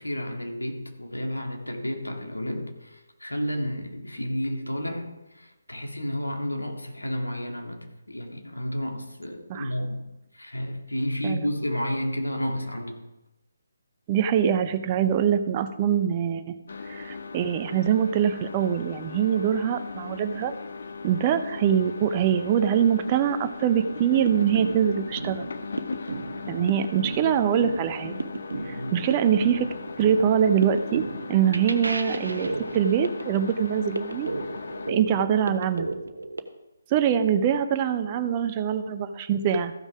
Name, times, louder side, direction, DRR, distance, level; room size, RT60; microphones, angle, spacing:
voice 1, 0.0-10.0 10.3-13.0 28.7-29.0, equal, 75° left, 3 dB, 2.1 m, -31 dB
voice 2, 14.1-16.5 16.9-20.5 21.0-25.5 26.5-28.2 28.7-29.7 30.0-31.0 31.3-34.3 34.9-35.9 36.9-39.7, right 8 dB, 25° right, 9 dB, 0.7 m, -24 dB
sound 1, 16.7-34.9, left 4 dB, 50° left, 0.8 m, -38 dB
sound 2, 24.0-36.4, right 2 dB, 65° right, 1.1 m, -34 dB
14.5 x 6.3 x 5.0 m, 0.98 s
figure-of-eight pair, 145°, 0 cm